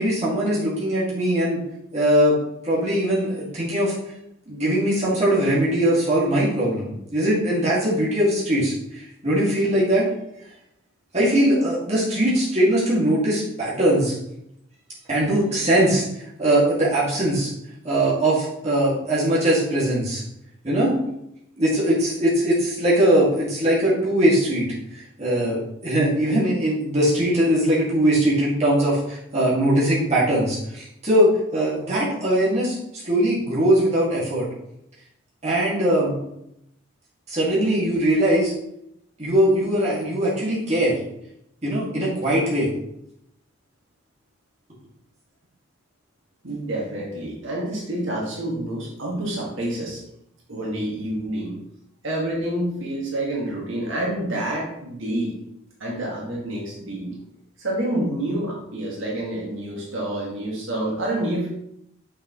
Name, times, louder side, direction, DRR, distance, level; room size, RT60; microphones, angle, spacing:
voice 1, 0.0-1.6 1.9-2.4 2.6-3.9 4.5-10.1 11.1-14.1 15.1-16.0 16.4-17.5 17.8-20.2 20.6-21.0 21.6-24.7 25.2-34.5 35.4-36.2 37.3-38.5 39.2-41.0 41.6-42.7, right 1 dB, 30° right, -8 dB, 2.2 m, -21 dB
voice 2, 46.4-50.0 50.5-51.6 52.0-55.3 55.8-57.2 57.6-61.5, right 1 dB, 70° right, -4 dB, 2.1 m, -28 dB
6.7 x 6.2 x 3.2 m, 0.79 s
head